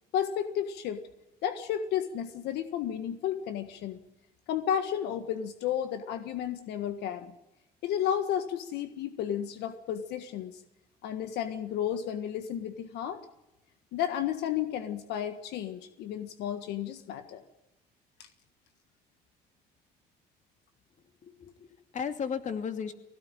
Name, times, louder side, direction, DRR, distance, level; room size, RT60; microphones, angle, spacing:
voice 1, 0.1-1.0 1.4-4.0 4.5-7.3 7.8-10.6 11.0-13.2 13.9-17.4 18.2-18.3, left 9 dB, 80° left, 8 dB, 1.6 m, -32 dB
voice 2, 21.2-22.9, left 6 dB, 45° left, 7 dB, 2.7 m, -35 dB
20.5 x 17.5 x 9.0 m, 0.93 s
cardioid pair, 110°, 17 cm